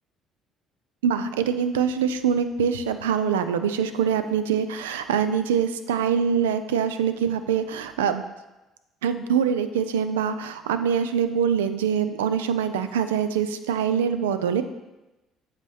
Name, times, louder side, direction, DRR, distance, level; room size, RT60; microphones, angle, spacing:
voice 1, 1.0-8.2 9.0-14.6, right 7 dB, 85° right, 10 dB, 0.3 m, -24 dB
8.0 x 4.1 x 3.3 m, 1.0 s
hypercardioid pair, 55°, 0 cm